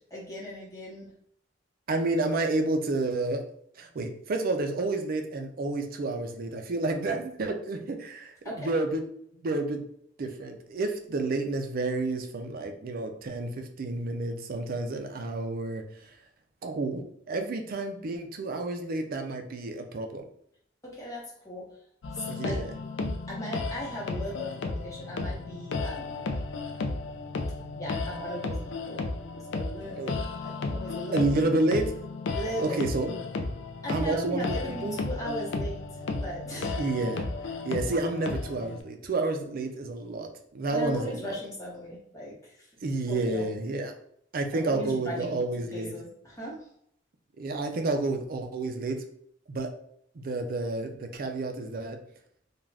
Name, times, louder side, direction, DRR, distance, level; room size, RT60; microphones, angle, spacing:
voice 1, 0.1-1.1 8.4-8.7 20.8-21.8 22.1-22.6 23.3-26.3 27.8-29.0 29.3-30.1 30.4-31.3 32.3-32.8 33.8-35.8 36.1-36.8 40.7-42.7 43.1-43.5 44.5-45.4 45.7-46.7, equal, 20° left, -5 dB, 1.0 m, -38 dB
voice 2, 1.9-3.4 3.8-9.0 9.4-9.8 10.2-15.8 16.6-20.2 22.3-22.7 30.0-30.1 31.1-31.9 32.6-33.2 33.9-34.6 34.8-35.0 36.7-37.2 37.7-41.4 42.8-43.9 44.3-45.9 47.4-49.0 49.5-49.7 50.1-52.0, right 2 dB, 50° right, 5 dB, 0.4 m, -30 dB
sound 1, 22.0-38.8, left 3 dB, 70° left, 0.4 m, -34 dB
2.5 x 2.3 x 3.3 m, 0.69 s
head